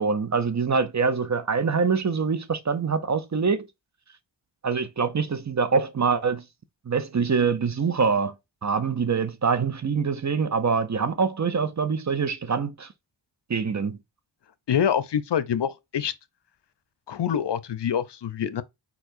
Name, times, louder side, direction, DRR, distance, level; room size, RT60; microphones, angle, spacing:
voice 1, 0.0-3.7 4.6-6.4 6.9-8.3 8.6-12.9 13.5-14.0, right 5 dB, 40° right, 0.7 m, -24 dB
voice 2, 14.7-16.1 17.1-18.6, left 8 dB, 65° left, 0.7 m, -25 dB
4.5 x 4.3 x 2.6 m
cardioid pair, 55°, 46 cm